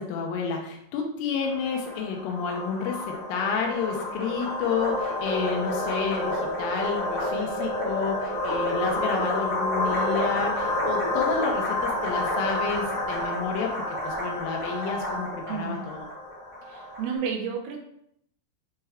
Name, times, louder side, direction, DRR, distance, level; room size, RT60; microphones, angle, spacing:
voice 1, 0.0-16.1, left 5 dB, 85° left, 1 dB, 2.4 m, -30 dB
sound 1, 1.4-17.1, left 1 dB, 65° left, 0.4 m, -29 dB
voice 2, 15.5-15.9 16.7-17.8, right 6 dB, 85° right, 1 dB, 2.5 m, -31 dB
6.5 x 2.3 x 3.4 m, 0.71 s
omnidirectional pair, 3.9 m